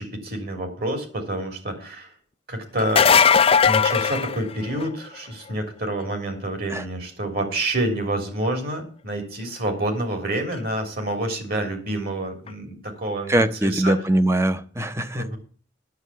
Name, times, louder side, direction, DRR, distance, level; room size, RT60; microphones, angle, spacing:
voice 1, 0.0-2.1 2.5-3.0 3.6-13.9 15.2-15.4, right 1 dB, 55° right, 6 dB, 3.3 m, -28 dB
sound 1, 2.8-5.0 10.5-10.6 12.5-12.6, left 6 dB, 30° left, 0.5 m, -18 dB
voice 2, 13.3-15.3, right 1 dB, 15° right, 11 dB, 0.8 m, -22 dB
9.6 x 7.5 x 8.2 m, 0.42 s
head